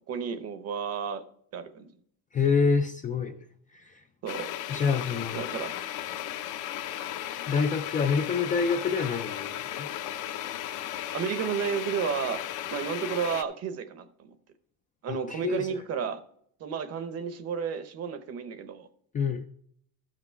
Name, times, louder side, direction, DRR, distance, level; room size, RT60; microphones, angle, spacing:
voice 1, 0.1-1.2 1.5-1.9 4.2-4.5 5.3-5.7 11.1-12.4 12.7-14.4 15.0-16.2 16.6-18.9, right 7 dB, 40° right, 11 dB, 0.9 m, -32 dB
voice 2, 2.3-3.5 3.7-4.0 4.7-5.5 7.5-9.9 15.1-15.7 19.1-19.5, left 5 dB, 25° left, 6 dB, 0.3 m, -27 dB
sound 1, 4.3-13.4, left 11 dB, 55° left, 0.7 m, -35 dB
13.5 x 5.9 x 4.5 m, 0.68 s
cardioid pair, 180°, 37 cm